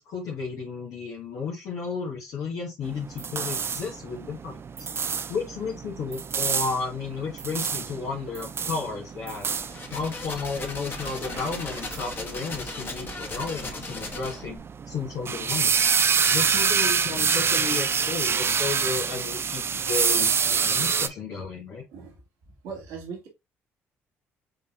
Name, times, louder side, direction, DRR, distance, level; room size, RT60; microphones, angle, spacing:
voice 1, 0.0-4.6 5.3-9.5 9.9-14.6 14.9-15.8 16.3-21.8, left 5 dB, 70° left, 1.4 m, -33 dB
sound 1, 2.8-21.1, right 6 dB, 40° right, 0.5 m, -27 dB
sound 2, 9.6-14.6, left 2 dB, 35° left, 1.6 m, -37 dB
voice 2, 21.9-22.2 22.6-23.3, right 5 dB, 80° right, 1.7 m, -39 dB
5.2 x 3.9 x 2.4 m
hypercardioid pair, 50°, 6 cm